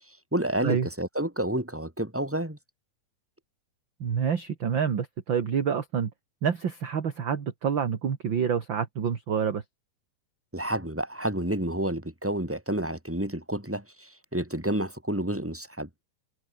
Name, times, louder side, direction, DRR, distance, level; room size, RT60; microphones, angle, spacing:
voice 1, 0.1-2.6 10.5-15.9, right 1 dB, 5° right, 4.9 m, -30 dB
voice 2, 4.0-6.1 6.4-9.6, right 7 dB, 40° right, 2.1 m, -27 dB
omnidirectional pair, 4.0 m